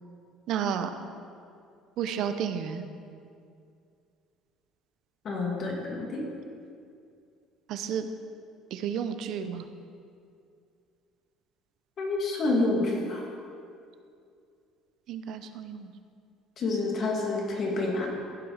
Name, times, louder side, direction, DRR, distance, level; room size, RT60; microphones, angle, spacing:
voice 1, 0.5-1.1 2.0-2.8 7.7-8.1 8.7-9.7 15.1-15.9, right 8 dB, 60° right, 9 dB, 0.8 m, -32 dB
voice 2, 5.2-6.3 12.0-13.2 16.6-18.1, left 2 dB, 40° left, -1 dB, 2.5 m, -28 dB
15.0 x 7.7 x 5.0 m, 2.4 s
cardioid pair, 145°, 0 cm